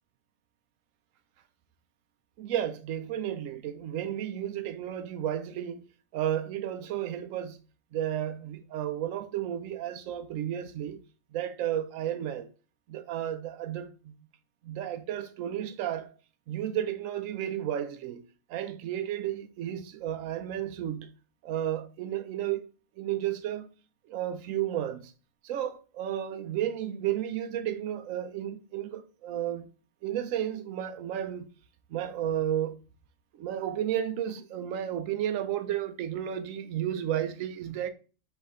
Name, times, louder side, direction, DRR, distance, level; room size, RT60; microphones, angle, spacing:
voice 1, 2.4-5.8 6.1-7.6 7.9-11.0 11.3-12.5 12.9-14.1 14.6-16.1 16.5-18.2 18.5-21.1 21.4-22.7 23.0-23.7 24.1-25.1 25.4-29.7 30.0-31.5 31.9-32.8 33.4-37.9, right 11 dB, 85° right, 1.0 m, -32 dB
3.4 x 3.1 x 4.8 m
omnidirectional pair, 1.3 m